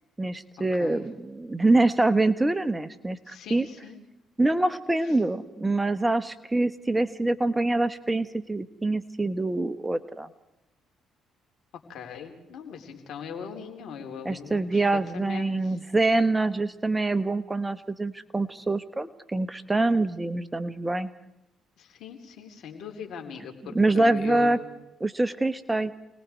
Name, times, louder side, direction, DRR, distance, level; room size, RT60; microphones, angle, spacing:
voice 1, 0.2-3.7 4.4-10.3 14.2-21.1 23.7-24.6 25.0-25.9, right 2 dB, 15° right, 13 dB, 1.4 m, -25 dB
voice 2, 0.7-1.0 3.3-4.0 11.9-14.8 15.1-15.8 21.8-24.7, left 7 dB, 70° left, 4 dB, 4.0 m, -40 dB
29.0 x 20.0 x 4.7 m, 0.86 s
supercardioid pair, 60°, 0 cm